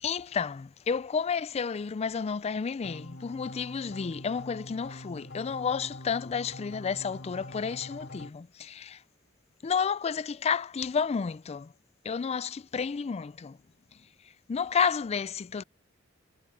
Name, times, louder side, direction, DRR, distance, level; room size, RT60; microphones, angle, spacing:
voice 1, 0.0-9.0 9.6-11.7 12.0-13.6 14.5-15.6, left 6 dB, 30° left, 0.4 m, -31 dB
sound 1, 2.8-8.3, left 1 dB, 60° left, 2.5 m, -44 dB
head